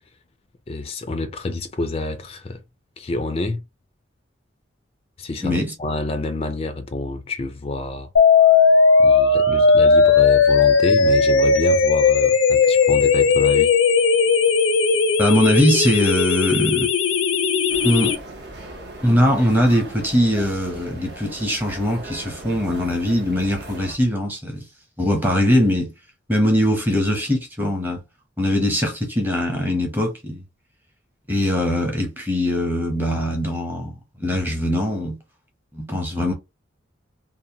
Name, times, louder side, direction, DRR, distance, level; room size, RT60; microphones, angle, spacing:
voice 1, 0.7-2.6 3.0-3.6 5.2-8.1 9.0-13.7, left 2 dB, 30° left, 0.3 m, -28 dB
voice 2, 5.4-5.7 15.2-16.9 17.8-18.2 19.0-24.6 25.0-25.9 26.3-28.0 28.4-30.4 31.3-35.2 35.7-36.3, equal, 10° right, 0.7 m, -21 dB
sound 1, 8.2-18.2, left 5 dB, 85° left, 0.5 m, -16 dB
sound 2, 17.7-24.0, right 2 dB, 60° right, 0.8 m, -38 dB
2.7 x 2.1 x 2.7 m
head